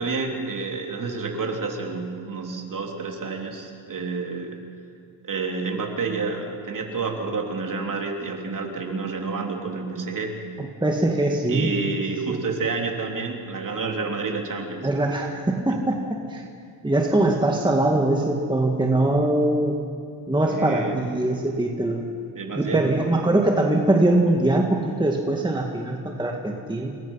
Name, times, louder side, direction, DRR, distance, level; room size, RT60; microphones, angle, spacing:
voice 1, 0.0-4.6 5.2-10.4 11.5-14.9 15.7-15.8 20.5-21.0 22.4-23.0, right 4 dB, 40° right, 2 dB, 3.4 m, -29 dB
voice 2, 10.8-11.7 12.3-12.4 14.8-16.4 16.8-19.8 20.3-22.0 22.6-27.0, right 1 dB, 10° right, 1 dB, 1.9 m, -22 dB
28.5 x 21.5 x 5.7 m, 2.3 s
cardioid pair, 115°, 50 cm